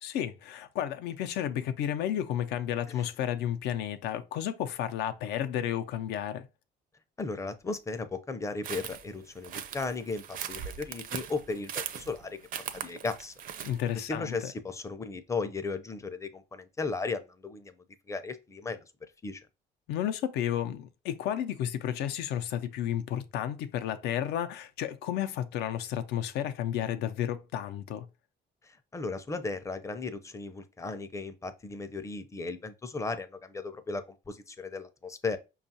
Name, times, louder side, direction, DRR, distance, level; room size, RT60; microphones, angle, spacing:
voice 1, 0.0-6.5 13.6-14.4 19.9-28.1, left 10 dB, 85° left, 0.6 m, -32 dB
voice 2, 7.2-12.4 12.7-13.3 13.9-17.7 18.1-18.8 19.2-19.4 28.6-35.4, left 3 dB, 20° left, 0.5 m, -36 dB
sound 1, 8.6-13.9, right 9 dB, 55° right, 0.5 m, -39 dB
5.3 x 2.4 x 2.7 m
cardioid pair, 110°, 17 cm